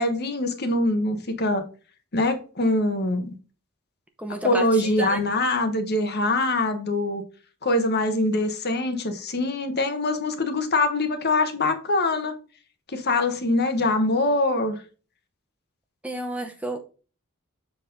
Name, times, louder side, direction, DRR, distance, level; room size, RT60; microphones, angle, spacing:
voice 1, 0.0-1.6 2.1-3.3 4.4-7.2 7.6-12.3 12.9-14.8, left 2 dB, 45° left, 1.2 m, -23 dB
voice 2, 4.2-5.2 16.0-16.8, right 1 dB, 5° right, 0.7 m, -31 dB
7.3 x 4.4 x 3.8 m
head